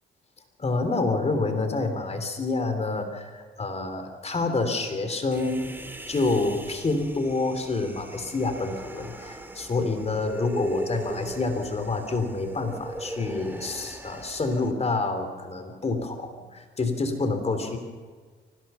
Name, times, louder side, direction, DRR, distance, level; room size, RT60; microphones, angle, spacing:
voice 1, 0.6-5.7 6.1-17.8, left 3 dB, 30° left, 7 dB, 3.5 m, -28 dB
Human voice, 5.3-14.7, right 1 dB, 10° right, 2.3 m, -39 dB
24.5 x 18.5 x 5.7 m, 1.5 s
cardioid pair, 90°, 20 cm